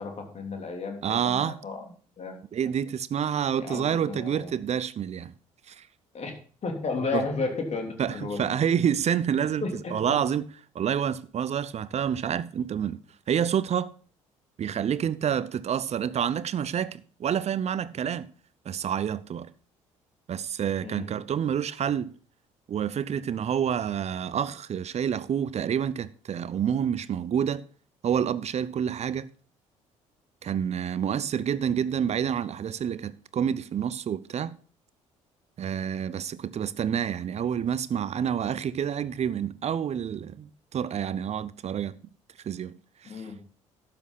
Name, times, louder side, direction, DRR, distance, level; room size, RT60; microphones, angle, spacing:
voice 1, 0.0-2.4 3.6-4.5 6.1-6.3 6.6-8.5 9.6-10.2 20.8-21.1 43.0-43.4, left 4 dB, 40° left, 3.1 m, -33 dB
voice 2, 1.0-1.6 2.5-5.3 5.7-5.9 7.1-7.2 8.0-9.6 9.9-10.5 10.7-13.0 13.3-13.9 14.6-18.3 18.7-19.5 20.3-22.1 22.7-27.6 28.0-29.3 30.4-34.6 35.6-41.9 42.4-42.8 43.0-43.3, right 8 dB, 40° right, 0.7 m, -28 dB
12.0 x 8.8 x 4.0 m
figure-of-eight pair, 50°, 17 cm